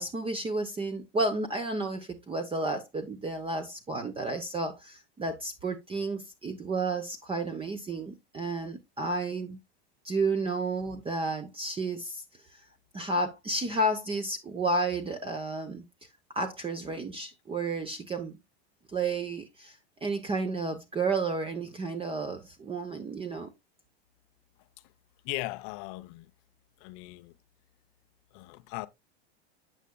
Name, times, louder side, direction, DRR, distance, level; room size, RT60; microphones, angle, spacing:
voice 1, 0.0-9.6 10.0-12.2 12.5-12.6 12.9-18.4 18.9-23.5, right 2 dB, 15° right, 0.8 m, -32 dB
voice 2, 25.2-26.3 26.8-27.3 28.3-28.9, left 21 dB, 55° left, 0.6 m, -38 dB
8.2 x 7.5 x 2.3 m
hypercardioid pair, 110°, 31 cm